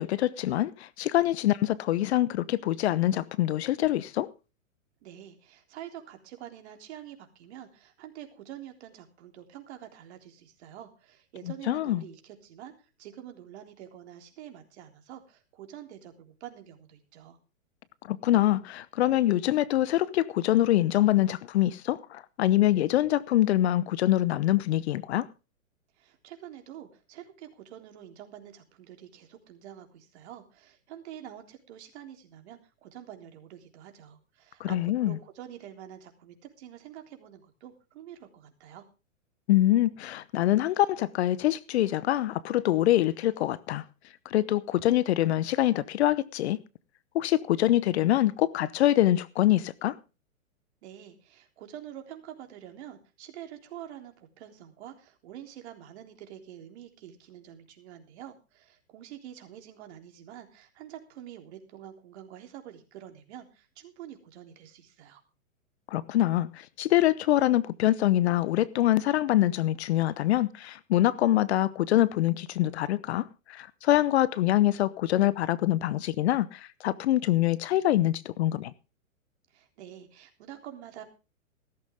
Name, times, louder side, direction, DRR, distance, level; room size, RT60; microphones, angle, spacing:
voice 1, 0.0-4.3 11.7-12.0 18.1-25.3 34.6-35.1 39.5-43.8 44.3-46.6 47.1-50.0 65.9-66.5 66.8-78.7, left 14 dB, 55° left, 0.9 m, -25 dB
voice 2, 5.0-12.7 13.0-17.4 26.0-38.8 50.8-65.2 79.5-81.0, right 11 dB, 55° right, 3.6 m, -47 dB
16.0 x 13.5 x 3.6 m
hypercardioid pair, 125°, 40 cm